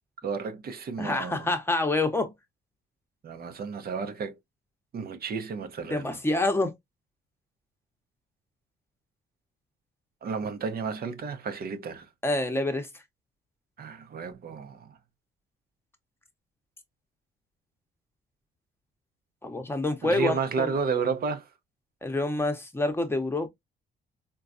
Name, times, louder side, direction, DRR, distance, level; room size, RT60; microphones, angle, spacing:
voice 1, 0.2-1.5 3.2-4.4 4.9-6.2 10.2-12.1 13.8-15.0 20.0-21.5, right 5 dB, 50° right, 0.7 m, -32 dB
voice 2, 1.0-2.3 5.9-6.7 12.2-12.9 19.4-20.7 22.0-23.5, left 2 dB, 10° left, 0.8 m, -27 dB
3.7 x 2.3 x 2.4 m
cardioid pair, 90°, 20 cm